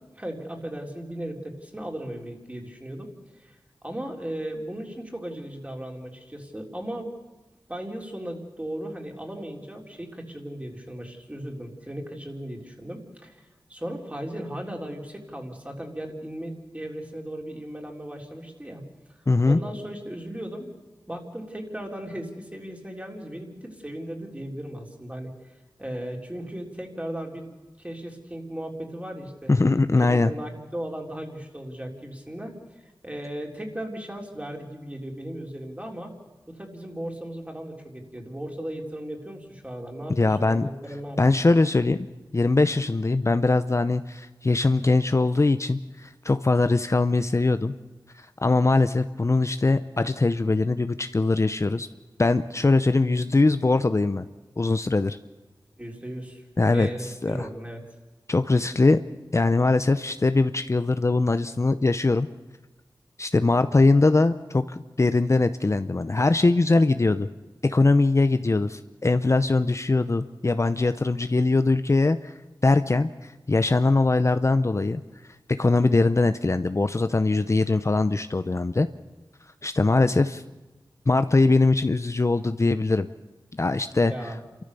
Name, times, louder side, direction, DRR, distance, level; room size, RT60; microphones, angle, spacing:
voice 1, 0.0-3.6 3.8-7.1 7.7-13.4 13.7-18.8 19.4-20.7 21.1-25.3 25.8-27.5 27.8-29.5 30.0-32.5 33.0-36.1 36.5-41.4 55.8-56.4 56.7-57.8 84.1-84.4, right 1 dB, 15° right, 1 dB, 3.8 m, -36 dB
voice 2, 19.3-19.6 29.5-30.3 40.1-40.7 41.2-42.0 42.3-47.7 48.2-51.9 52.2-54.3 54.6-55.2 56.6-57.5 58.3-59.0 59.3-62.3 63.2-67.3 67.6-72.3 72.6-73.1 73.5-75.0 75.5-78.9 79.6-80.4 81.1-83.1 83.5-84.3, left 3 dB, 40° left, 10 dB, 0.6 m, -21 dB
28.5 x 14.0 x 6.9 m, 1.2 s
wide cardioid pair, 55°, 8 cm